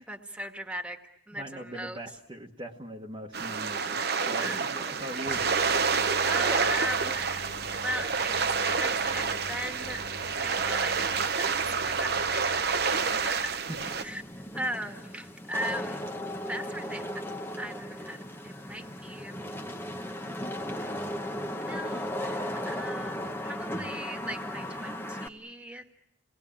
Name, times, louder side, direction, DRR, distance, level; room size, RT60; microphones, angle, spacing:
voice 1, 0.1-1.0 1.3-2.0 4.4-4.7 6.2-7.5 7.8-10.0 10.4-13.6 14.0-14.2 14.5-16.0 16.5-17.2 17.6-19.4 20.8-20.9 21.6-25.9, equal, 5° right, 4 dB, 1.9 m, -38 dB
voice 2, 1.3-5.5 13.9-14.0, right 1 dB, 25° right, -1 dB, 1.5 m, -41 dB
sound 1, 3.3-14.0, right 5 dB, 50° right, 1.0 m, -28 dB
Engine, 5.2-14.7, left 2 dB, 65° left, 2.1 m, -47 dB
Wind / Rain, 13.8-25.3, left 1 dB, 10° left, 1.1 m, -36 dB
29.0 x 20.0 x 8.8 m, 0.78 s
head